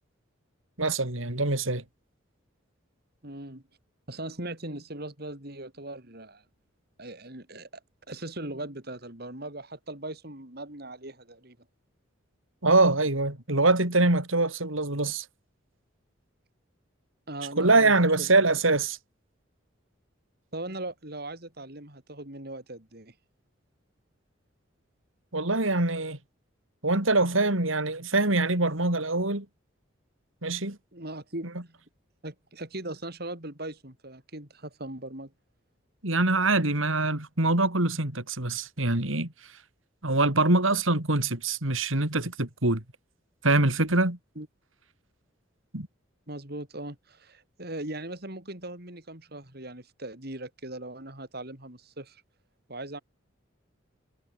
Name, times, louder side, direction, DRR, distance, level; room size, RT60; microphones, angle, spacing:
voice 1, 0.8-1.8 12.6-15.3 17.6-19.0 25.3-26.2 26.8-29.5 30.4-30.8 36.0-39.3 40.0-42.8 43.4-44.2 45.7-45.9, right 2 dB, 85° right, 4.1 m, -24 dB
voice 2, 3.2-3.6 4.1-6.4 7.0-7.7 8.1-11.6 17.3-18.3 20.5-23.1 30.9-31.8 32.2-35.3 44.4-44.5 46.3-52.2 52.7-53.0, right 1 dB, 50° right, 4.3 m, -39 dB
head